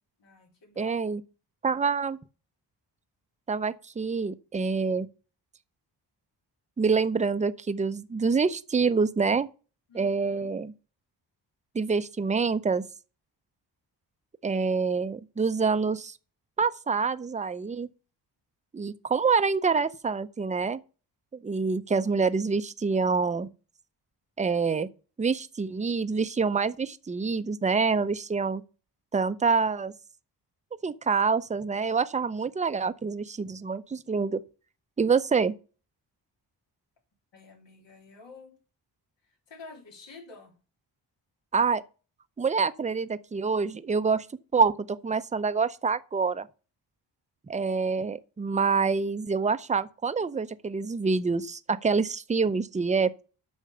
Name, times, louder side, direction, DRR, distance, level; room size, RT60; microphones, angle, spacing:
voice 1, 0.2-1.0 9.9-10.5 37.3-38.6 39.2-40.5, left 4 dB, 80° left, 3.2 m, -49 dB
voice 2, 0.8-1.2 1.6-2.2 3.5-5.1 6.8-9.5 9.9-10.7 11.7-12.8 14.4-16.1 16.6-17.9 18.7-20.8 21.4-23.5 24.4-24.9 25.2-28.6 29.1-29.9 30.8-34.4 35.0-35.5 41.5-41.8 42.4-44.3 44.5-46.5 47.5-53.2, right 5 dB, 15° right, 0.5 m, -26 dB
8.5 x 6.3 x 6.8 m
wide cardioid pair, 120°, 43 cm